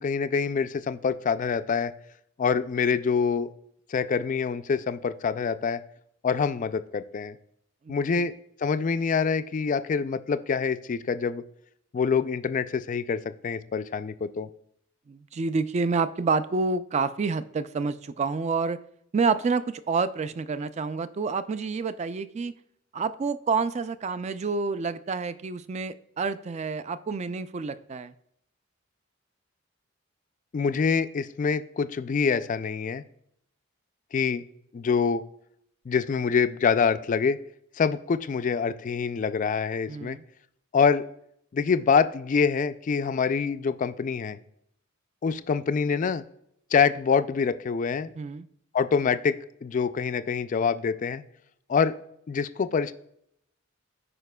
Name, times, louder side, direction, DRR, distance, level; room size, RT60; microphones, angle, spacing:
voice 1, 0.0-1.9 2.4-3.5 3.9-5.8 6.2-7.4 7.9-8.3 8.6-11.4 11.9-14.5 30.5-33.0 34.1-34.4 34.7-35.2 35.9-37.4 37.8-40.2 40.7-41.0 41.5-44.4 45.2-46.2 46.7-48.1 48.7-51.2 51.7-51.9 52.3-52.9, left 5 dB, 40° left, 12 dB, 0.3 m, -25 dB
voice 2, 7.9-8.2 15.1-18.8 19.1-22.5 22.9-28.1 39.9-40.2 48.2-48.5, right 4 dB, 35° right, 14 dB, 0.3 m, -28 dB
14.5 x 4.9 x 2.2 m, 0.72 s
head